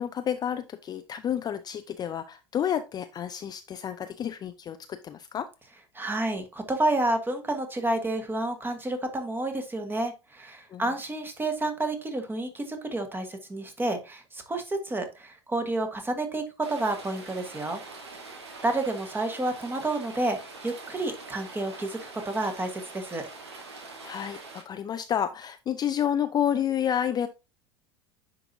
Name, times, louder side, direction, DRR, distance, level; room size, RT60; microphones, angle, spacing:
voice 1, 0.0-5.5 10.7-10.9 24.0-27.3, left 9 dB, 30° left, 10 dB, 0.5 m, -30 dB
voice 2, 5.9-17.8 18.6-22.0 22.2-23.2, right 2 dB, 15° right, 6 dB, 1.5 m, -30 dB
Rain, 16.6-24.6, right 3 dB, 85° right, 1.4 m, -44 dB
9.8 x 3.9 x 2.7 m, 0.27 s
hypercardioid pair, 85°, 14 cm